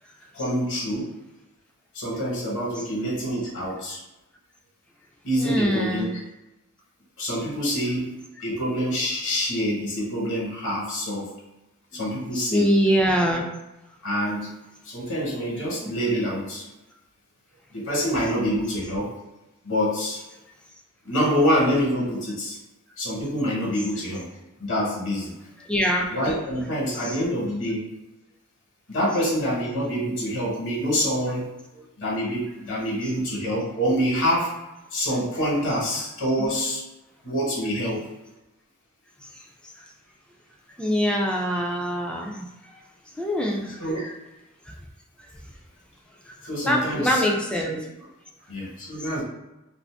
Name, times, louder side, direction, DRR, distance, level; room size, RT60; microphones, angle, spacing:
voice 1, 0.3-1.1 1.9-4.0 5.2-6.1 7.2-11.3 11.9-12.7 14.0-14.5 14.8-16.6 17.7-19.1 19.6-20.2 21.0-22.6 23.0-24.3 24.6-25.3 26.1-27.9 28.9-34.5 34.9-36.8 37.2-38.0 43.8-44.0 46.4-47.2 47.7-47.8 48.5-49.2, equal, 60° left, -4 dB, 1.2 m, -26 dB
voice 2, 5.4-6.2 11.9-13.5 15.8-15.9 25.6-26.1 26.9-27.2 33.0-33.1 39.3-39.4 39.8-39.9 40.8-42.7 43.2-43.9 44.7-44.8 45.2-45.3 46.3-46.4 46.7-47.8 49.0-49.1, equal, 5° left, 0 dB, 0.4 m, -25 dB
2.5 x 2.5 x 3.5 m, 0.98 s
head